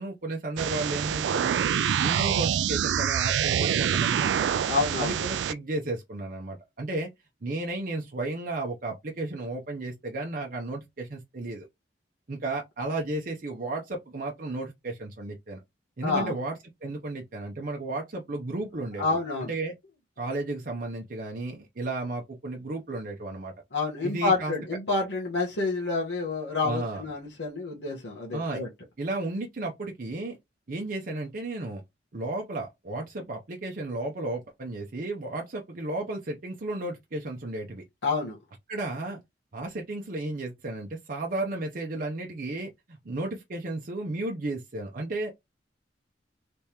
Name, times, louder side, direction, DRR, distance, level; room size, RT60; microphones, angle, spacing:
voice 1, 0.0-1.6 1.9-4.6 5.0-7.1 7.4-11.7 12.3-15.6 16.0-16.6 16.8-19.7 20.2-23.5 24.0-24.5 26.6-27.0 28.3-28.6 29.0-30.4 30.7-31.8 32.1-37.8 38.7-39.2 39.5-45.3, right 2 dB, 50° right, 0.7 m, -33 dB
sound 1, 0.6-5.5, right 9 dB, 80° right, 0.3 m, -26 dB
voice 2, 4.7-5.2 16.0-16.4 19.0-19.5 23.7-28.7 38.0-38.4, left 3 dB, 80° left, 1.3 m, -28 dB
3.4 x 2.9 x 3.4 m
head